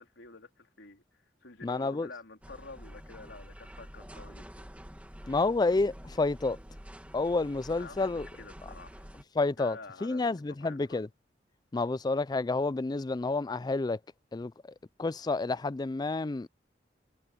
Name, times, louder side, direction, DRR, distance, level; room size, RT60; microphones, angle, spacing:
voice 1, 0.0-4.7 7.7-9.1 9.5-11.0, left 3 dB, 90° left, 3.6 m, -49 dB
voice 2, 1.6-2.1 5.3-6.6 7.1-8.3 9.4-11.1 11.7-14.0 14.3-14.7 15.0-16.5, left 3 dB, 20° left, 0.4 m, -29 dB
sound 1, 2.4-9.2, equal, 10° right, 2.1 m, -48 dB
head